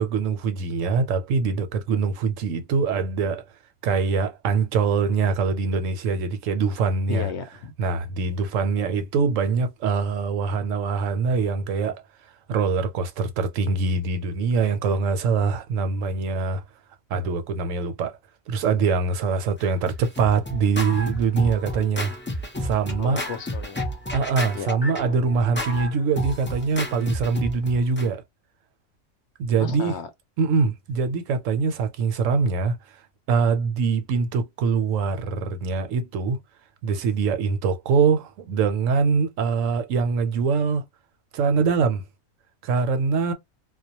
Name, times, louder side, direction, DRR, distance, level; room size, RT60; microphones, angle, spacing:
voice 1, 0.0-3.4 3.8-7.3 7.8-12.0 12.5-16.6 17.1-18.1 18.5-22.1 22.6-23.2 24.1-28.2 29.4-29.9 30.4-32.8 33.3-36.4 36.8-40.8 41.3-42.0 42.6-43.3, right 5 dB, 75° right, 0.9 m, -23 dB
voice 2, 7.1-7.7 23.0-23.8 24.5-24.7 29.6-30.1, left 6 dB, 65° left, 0.8 m, -33 dB
Scratching (performance technique), 19.6-28.1, left 1 dB, 15° left, 0.4 m, -32 dB
2.3 x 2.1 x 2.7 m
omnidirectional pair, 1.4 m